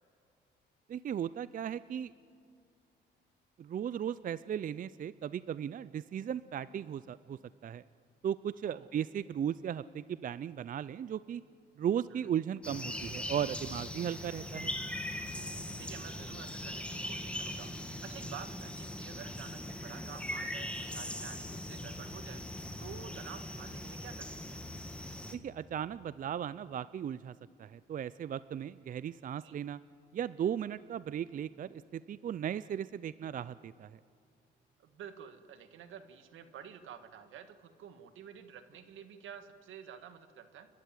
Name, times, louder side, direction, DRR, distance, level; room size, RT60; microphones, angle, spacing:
voice 1, 0.9-2.1 3.6-7.8 8.2-11.4 11.8-14.7 25.3-29.8 30.1-34.0, right 9 dB, 45° right, 17 dB, 0.5 m, -36 dB
sound 1, 12.6-25.3, left 1 dB, 5° left, 1.9 m, -40 dB
voice 2, 15.8-22.4 22.8-24.6 29.4-29.5 34.8-40.7, right 8 dB, 80° right, 9 dB, 1.7 m, -50 dB
30.0 x 12.5 x 9.1 m, 2.4 s
cardioid pair, 90°, 20 cm